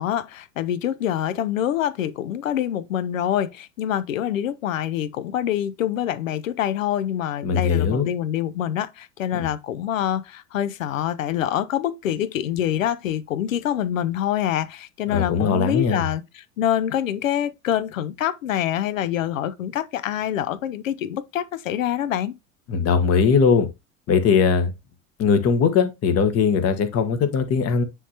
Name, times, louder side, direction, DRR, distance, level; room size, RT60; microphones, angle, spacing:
voice 1, 0.0-22.3, left 11 dB, 70° left, 0.7 m, -25 dB
voice 2, 7.4-8.1 9.3-9.5 15.1-16.1 22.7-23.7 24.1-24.7 25.2-27.8, left 6 dB, 35° left, 1.3 m, -20 dB
9.8 x 3.7 x 2.9 m
figure-of-eight pair, 80°, 42 cm